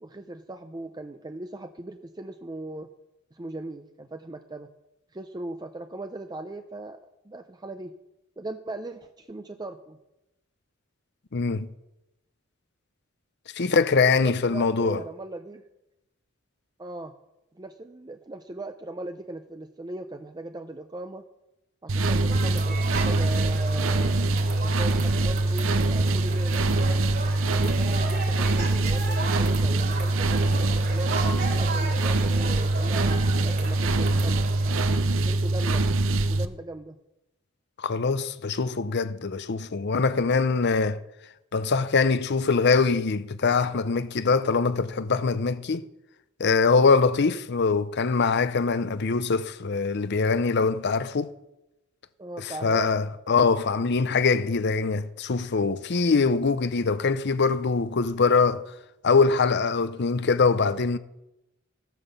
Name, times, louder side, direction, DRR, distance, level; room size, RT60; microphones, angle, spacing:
voice 1, 0.0-2.9 3.3-4.7 5.1-7.9 8.4-10.0 14.2-15.6 16.8-17.1 17.5-21.2 21.8-24.2 24.6-27.0 27.5-31.1 31.5-34.8 35.2-35.9 36.1-37.0 52.2-52.9, right 2 dB, 20° right, 0.6 m, -39 dB
voice 2, 11.3-11.7 13.6-15.0 37.8-41.0 41.5-45.9 46.4-51.3 52.4-58.6 59.0-61.0, left 4 dB, 55° left, 0.6 m, -23 dB
sound 1, 21.9-36.4, right 2 dB, 70° right, 0.8 m, -24 dB
sound 2, 22.3-35.0, right 3 dB, 50° right, 2.9 m, -36 dB
14.0 x 9.1 x 6.9 m
head